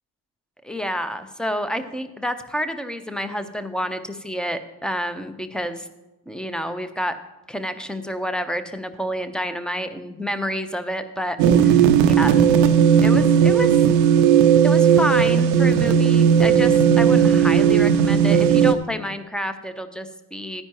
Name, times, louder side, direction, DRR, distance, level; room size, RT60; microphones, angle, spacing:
voice 1, 0.6-5.9 6.3-7.1 7.5-12.3 13.0-13.8 14.6-20.6, equal, ahead, 10 dB, 0.9 m, -29 dB
sound 1, 11.4-18.7, right 8 dB, 80° right, 0.6 m, -16 dB
14.0 x 9.8 x 3.0 m, 1.0 s
hypercardioid pair, 40°, 48 cm